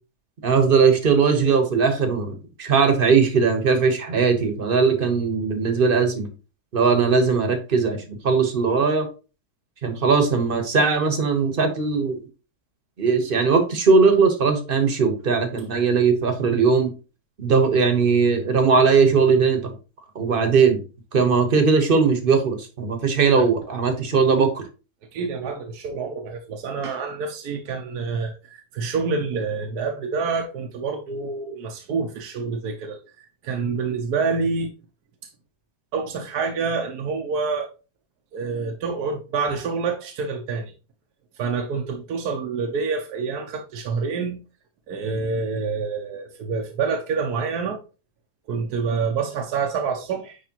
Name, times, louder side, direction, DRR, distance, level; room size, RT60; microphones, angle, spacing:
voice 1, 0.4-6.3 6.7-9.1 9.8-12.2 13.0-16.9 17.4-19.7 20.1-20.8 21.1-24.6, right 5 dB, 35° right, 1.2 m, -19 dB
voice 2, 25.1-34.7 35.9-37.7 38.3-40.7 41.4-44.4 44.9-47.8 48.5-50.4, right 5 dB, 75° right, 1.3 m, -27 dB
9.8 x 3.3 x 2.9 m
omnidirectional pair, 1.7 m